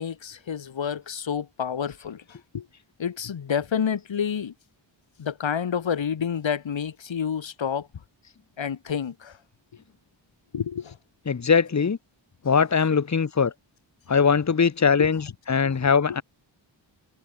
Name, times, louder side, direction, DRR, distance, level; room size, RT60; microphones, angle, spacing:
voice 1, 0.0-2.7 3.0-4.5 5.2-7.9 8.6-9.4 10.5-11.0 15.0-15.1 15.6-16.2, left 7 dB, 75° left, 3.0 m, -29 dB
voice 2, 11.2-12.0 12.4-13.5 14.1-16.2, left 6 dB, 35° left, 1.4 m, -21 dB
wide cardioid pair, 120°, 46 cm